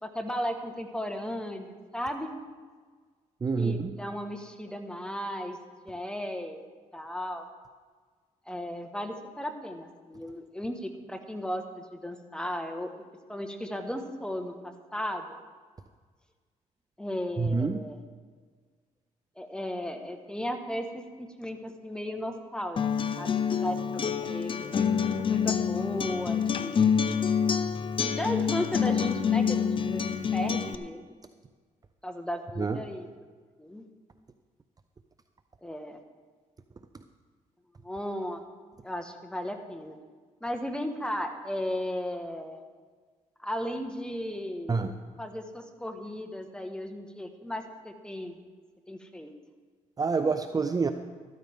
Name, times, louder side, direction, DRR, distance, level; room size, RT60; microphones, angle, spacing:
voice 1, 0.0-2.3 3.6-5.6 5.8-6.6 6.9-7.4 8.5-12.9 13.3-15.2 17.0-18.0 19.4-22.8 23.2-26.9 28.0-31.0 32.0-33.1 33.6-33.8 35.6-36.0 37.8-38.4 38.8-39.9 40.4-42.6 43.4-44.8 45.2-48.3 48.9-49.3, equal, 5° left, 5 dB, 1.5 m, -35 dB
voice 2, 3.4-3.9 17.4-17.8 32.6-32.8 44.7-44.9 50.0-50.9, right 4 dB, 30° right, 8 dB, 0.6 m, -27 dB
Acoustic guitar, 22.8-30.7, left 7 dB, 40° left, 0.7 m, -27 dB
13.5 x 13.5 x 3.6 m, 1.5 s
cardioid pair, 85°, 13 cm